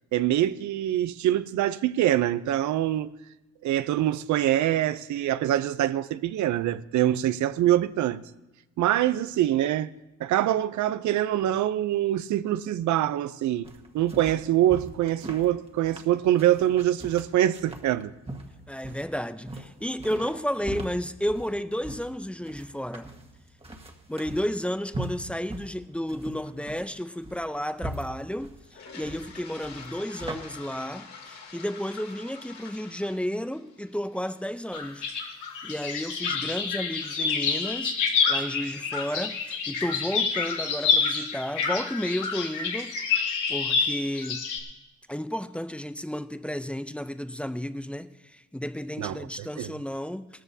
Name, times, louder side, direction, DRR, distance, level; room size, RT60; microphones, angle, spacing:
voice 1, 0.1-3.1 3.6-8.2 8.8-9.9 10.2-13.7 13.9-18.1 49.0-49.7, right 12 dB, 70° right, 0.6 m, -24 dB
sound 1, 13.6-30.4, right 1 dB, 20° right, 1.6 m, -41 dB
voice 2, 18.7-23.1 24.1-28.6 28.9-35.1 35.6-37.9 38.3-43.0 43.5-44.5 45.1-50.3, equal, 5° left, 0.5 m, -32 dB
Toilet flush, 28.6-36.6, left 5 dB, 65° left, 2.8 m, -47 dB
sound 2, 34.7-44.6, left 5 dB, 85° left, 1.9 m, -28 dB
18.0 x 13.5 x 2.7 m
cardioid pair, 90°, 30 cm